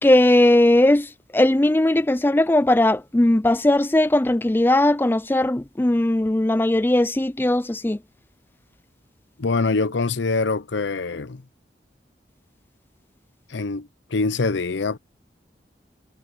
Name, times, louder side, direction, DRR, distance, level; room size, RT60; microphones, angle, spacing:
voice 1, 0.0-8.0, left 1 dB, 10° left, 0.4 m, -18 dB
voice 2, 9.4-11.4 13.5-15.0, left 3 dB, 90° left, 0.7 m, -24 dB
head